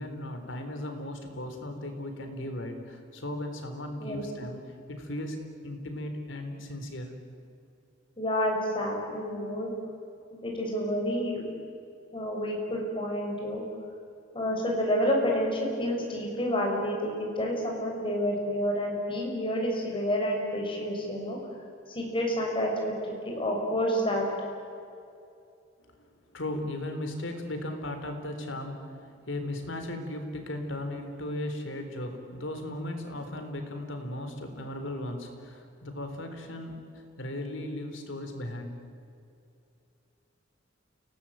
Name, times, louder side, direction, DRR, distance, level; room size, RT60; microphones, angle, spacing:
voice 1, 0.0-7.1 26.3-38.8, left 1 dB, 70° left, 5 dB, 3.9 m, -37 dB
voice 2, 8.2-9.7 10.3-11.4 12.1-13.6 14.3-21.4 21.9-22.7 23.0-24.2, equal, 25° left, 0 dB, 6.3 m, -29 dB
29.0 x 18.5 x 9.1 m, 2.5 s
head